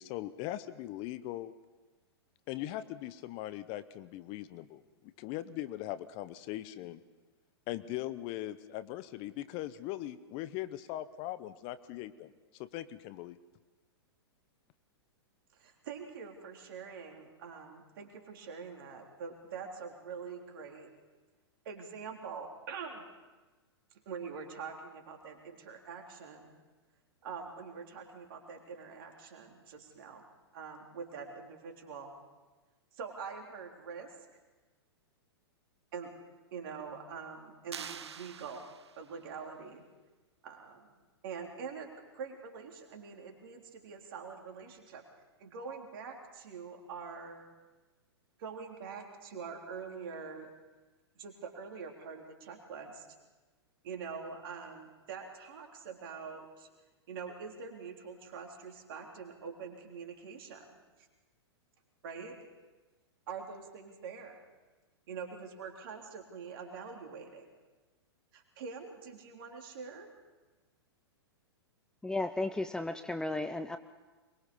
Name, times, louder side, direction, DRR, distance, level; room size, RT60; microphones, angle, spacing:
voice 1, 0.0-1.5 2.5-4.8 5.2-7.0 7.7-13.4, left 14 dB, 40° left, 15 dB, 0.8 m, -40 dB
voice 2, 15.5-20.9 21.7-23.1 24.1-26.5 27.2-30.2 30.5-32.1 32.9-34.1 35.9-36.1 36.5-38.7 39.0-39.8 40.4-40.9 41.2-41.9 42.1-45.0 45.4-47.5 48.4-50.5 51.2-53.1 53.8-56.7 57.1-61.1 62.0-62.4 63.3-64.4 65.1-67.5 68.3-70.1, right 5 dB, 55° right, 2 dB, 3.7 m, -44 dB
sound 1, 37.7-39.2, right 7 dB, 80° right, 0.9 m, -45 dB
voice 3, 72.0-73.8, left 2 dB, 5° left, 11 dB, 0.6 m, -34 dB
23.0 x 21.5 x 5.5 m, 1.2 s
hypercardioid pair, 115°, 14 cm